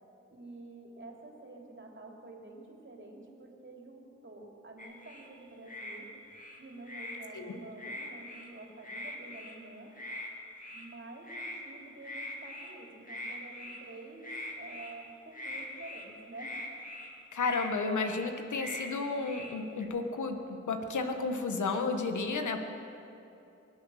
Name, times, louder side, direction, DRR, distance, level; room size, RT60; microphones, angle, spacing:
voice 1, 0.3-6.1 6.6-9.9 10.7-14.3 14.6-16.8, right 2 dB, 40° right, 0 dB, 3.4 m, -49 dB
sound 1, 4.8-5.3 5.7-6.0 6.3-7.2 7.8-8.5 8.8-9.6 10.0-10.3 10.5-10.9 11.2-11.6 12.0-12.7 13.1-13.9 14.2-14.9 15.3-16.1 16.4-17.1 17.4-17.7 18.0-18.3 18.5-18.9 19.2-19.9, left 1 dB, 25° left, 2.6 m, -42 dB
voice 2, 17.3-22.6, left 4 dB, 85° left, 6 dB, 1.3 m, -32 dB
23.5 x 8.0 x 6.5 m, 2.8 s
cardioid pair, 45°, 29 cm